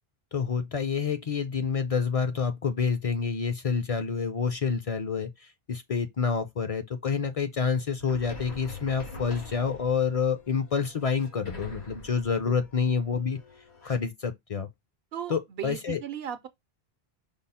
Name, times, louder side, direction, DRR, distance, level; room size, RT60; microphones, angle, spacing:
voice 1, 0.3-13.4 13.8-14.7 15.3-16.0, left 6 dB, 45° left, 0.5 m, -28 dB
sound 1, 8.0-14.0, left 2 dB, 90° left, 2.0 m, -45 dB
voice 2, 15.1-16.5, right 9 dB, 75° right, 0.8 m, -37 dB
5.3 x 2.0 x 4.1 m
omnidirectional pair, 1.0 m